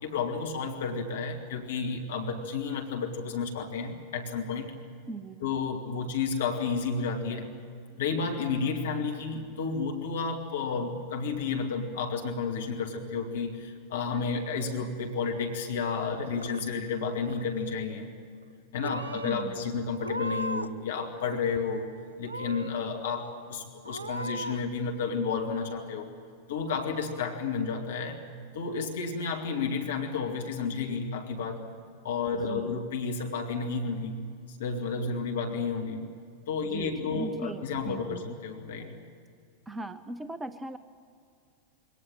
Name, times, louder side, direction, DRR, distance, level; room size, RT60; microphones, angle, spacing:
voice 1, 0.0-4.7 5.4-7.5 8.0-18.1 18.7-21.9 22.2-26.1 26.5-28.2 28.5-31.6 32.0-34.2 34.5-36.0 36.5-39.0, left 5 dB, 60° left, 3 dB, 2.3 m, -31 dB
voice 2, 5.1-5.5 19.1-19.7 32.5-32.8 36.6-38.3 39.7-40.8, right 2 dB, 10° right, 13 dB, 0.8 m, -39 dB
Purr / Meow, 16.0-16.9 17.2-17.7 18.4-18.6 18.8-19.4 19.9-20.8 21.1-21.8 22.2-22.8 23.3-23.4 23.8-24.6, right 1 dB, 80° right, 0.8 m, -37 dB
24.0 x 18.5 x 9.0 m, 2.3 s
figure-of-eight pair, 90°, 0 cm